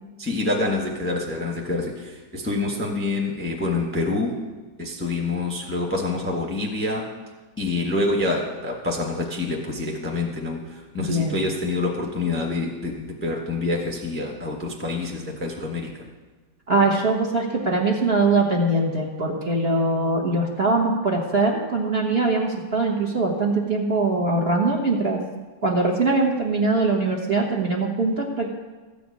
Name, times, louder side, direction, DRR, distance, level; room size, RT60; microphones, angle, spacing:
voice 1, 0.2-4.4 4.8-7.1 7.6-15.9, left 2 dB, 10° left, 0 dB, 1.0 m, -26 dB
voice 2, 11.1-11.4 16.7-25.2 25.6-28.5, right 2 dB, 35° right, -1 dB, 1.4 m, -22 dB
14.0 x 5.2 x 8.4 m, 1.3 s
omnidirectional pair, 2.1 m